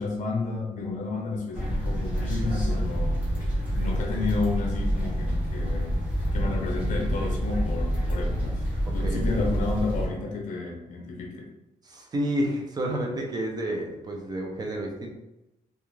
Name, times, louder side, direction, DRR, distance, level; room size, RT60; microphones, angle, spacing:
voice 1, 0.0-3.2 3.7-5.9 6.3-8.7 8.9-11.5, left 3 dB, 55° left, 1 dB, 0.6 m, -31 dB
sound 1, 1.5-10.1, equal, 10° right, 0.9 m, -27 dB
voice 2, 8.9-9.5 11.8-15.1, right 1 dB, 25° right, 1 dB, 0.4 m, -30 dB
2.4 x 2.4 x 3.0 m, 0.93 s
wide cardioid pair, 160°, 15 cm